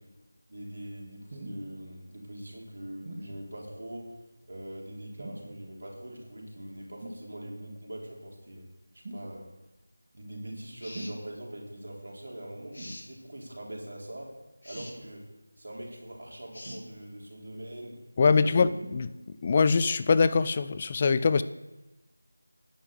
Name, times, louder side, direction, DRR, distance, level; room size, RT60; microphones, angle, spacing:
voice 1, 0.5-4.1 4.5-8.6 8.9-9.4 10.1-14.3 14.6-15.2 15.6-17.9 18.3-18.8, right 1 dB, 60° right, -2 dB, 3.8 m, -42 dB
sound 1, 1.3-1.6 3.0-3.3 5.2-5.6 7.0-7.3 9.0-9.3 10.9-11.2 12.8-13.0 14.7-15.0 16.6-17.2 18.8-19.0 19.8-19.9, right 1 dB, 35° right, 2.4 m, -42 dB
sound 2, 10.8-11.2 12.7-13.1 14.6-15.0 16.5-16.8, left 1 dB, 50° left, 2.5 m, -44 dB
voice 2, 18.2-19.1 19.4-21.4, left 5 dB, 25° left, 14 dB, 0.3 m, -23 dB
11.5 x 5.6 x 7.9 m, 1.1 s
figure-of-eight pair, 170°, 0 cm